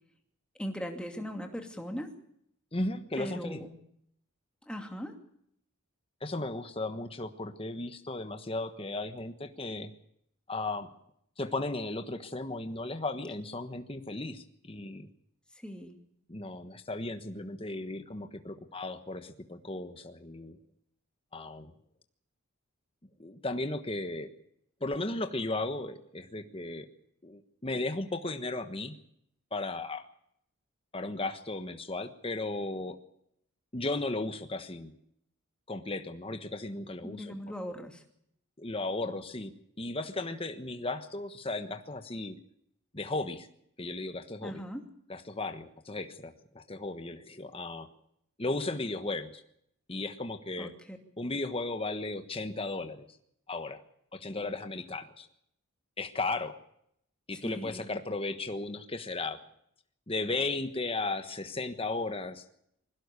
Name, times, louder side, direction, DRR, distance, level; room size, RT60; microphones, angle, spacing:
voice 1, 0.6-2.1 3.2-3.8 4.7-5.1 15.5-16.0 37.0-38.0 44.4-44.8 50.6-51.0 57.3-57.9, equal, 5° left, 4 dB, 2.5 m, -39 dB
voice 2, 2.7-3.6 6.2-9.9 10.5-10.9 11.4-15.1 16.3-20.6 21.3-21.7 23.2-24.3 24.8-26.9 27.2-29.0 29.5-30.1 30.9-33.0 33.7-35.0 35.7-37.3 38.6-39.5 39.8-42.4 42.9-43.5 43.8-44.6 45.1-47.9 48.4-49.4 49.9-50.7 51.2-53.1 53.5-53.8 54.1-55.3 56.0-56.5 57.3-59.4 60.1-62.5, left 2 dB, 25° left, 8 dB, 1.3 m, -35 dB
21.0 x 17.0 x 8.3 m, 0.71 s
head